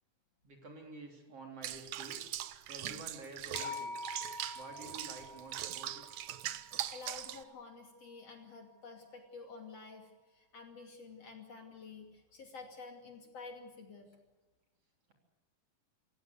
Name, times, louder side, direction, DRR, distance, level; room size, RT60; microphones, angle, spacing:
voice 1, 0.4-2.2 2.7-3.9 4.5-6.0, right 2 dB, 45° right, 2 dB, 4.2 m, -49 dB
Water / Bathtub (filling or washing), 1.6-7.4, right 12 dB, 70° right, 1.7 m, -41 dB
sound 1, 3.5-7.8, left 2 dB, 75° left, 7.5 m, -47 dB
voice 2, 6.9-14.2, left 4 dB, 45° left, 3 dB, 3.5 m, -50 dB
27.0 x 17.0 x 8.1 m, 1.2 s
omnidirectional pair, 4.1 m